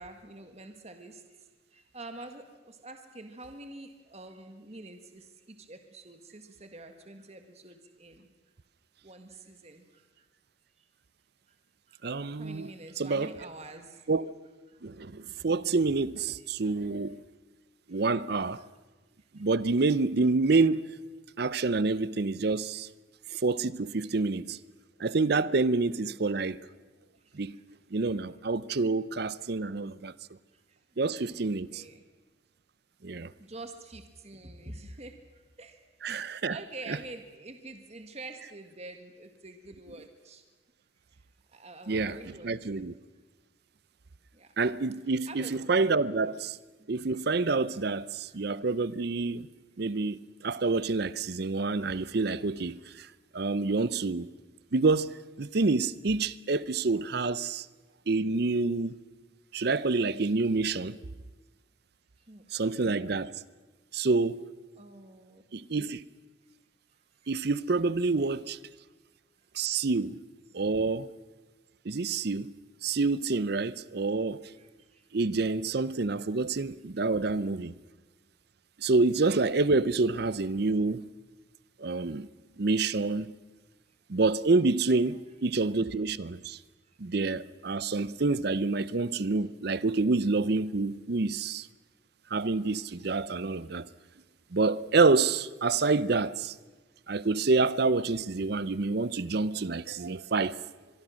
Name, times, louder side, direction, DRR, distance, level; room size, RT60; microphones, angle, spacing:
voice 1, 0.0-1.4 1.7-8.3 9.0-10.1 10.8-10.9 11.5-11.6 11.9-12.0 12.4-14.1 14.7-14.8 15.2-15.3 16.4-16.5 17.9-18.0 24.0-24.1 27.2-27.6 28.0-28.2 30.5-30.8 31.1-32.0 33.2-35.8 36.1-40.4 41.5-42.9 44.3-44.5 45.3-45.5 46.8-47.2 48.3-48.4 62.3-63.1 64.8-65.4 67.2-67.3 74.6-75.0 85.1-85.2 85.8-85.9 86.8-87.0 92.6-92.7 93.7-93.8, right 2 dB, 35° right, 1.6 m, -47 dB
voice 2, 12.0-12.7 13.0-13.3 14.1-14.3 14.8-17.2 17.9-18.6 19.3-20.8 21.4-22.9 23.3-24.6 25.0-26.6 27.3-27.6 27.9-30.1 31.0-31.8 33.0-33.3 36.0-36.6 41.9-42.2 42.4-42.9 44.6-46.6 46.9-49.5 49.8-53.1 53.3-54.3 54.7-57.7 58.1-58.9 59.5-61.0 62.5-63.3 63.9-64.4 65.5-66.0 67.3-68.6 69.5-70.2 70.5-71.1 71.9-72.5 72.8-74.4 75.1-77.7 78.8-81.0 81.8-82.3 82.6-83.3 84.1-86.6 87.0-91.7 92.3-93.9 94.5-96.5 97.1-100.6, right 3 dB, 55° right, 0.6 m, -27 dB
25.0 x 22.5 x 6.4 m
head